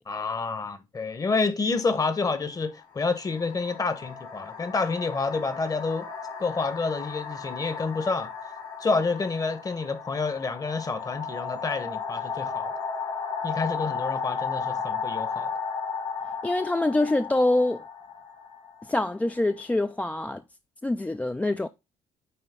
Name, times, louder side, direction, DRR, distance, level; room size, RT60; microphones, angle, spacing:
voice 1, 0.1-6.1 6.4-8.3 8.8-12.7 13.4-15.5, left 4 dB, 30° left, 1.0 m, -28 dB
sound 1, 1.8-2.0 2.9-19.6, left 5 dB, 75° left, 3.0 m, -35 dB
voice 2, 16.4-17.8 18.9-20.4 20.8-21.7, left 2 dB, 10° left, 0.3 m, -25 dB
9.0 x 3.1 x 3.6 m
supercardioid pair, 70°, 13 cm